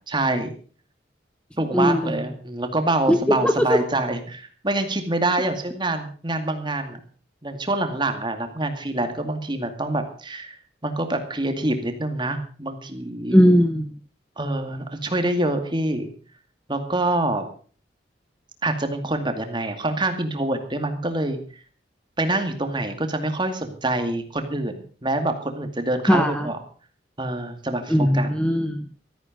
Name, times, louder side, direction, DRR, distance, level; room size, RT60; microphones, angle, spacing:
voice 1, 0.1-0.5 1.6-7.0 7.4-10.6 10.8-13.4 14.4-16.1 16.7-17.5 18.6-21.4 22.2-26.6 27.2-28.3, right 2 dB, 25° right, 7 dB, 2.3 m, -26 dB
voice 2, 1.7-2.1 3.1-3.8 13.3-13.9 26.1-26.5 27.9-28.8, equal, 5° left, 8 dB, 0.8 m, -18 dB
15.0 x 14.0 x 5.2 m, 0.41 s
head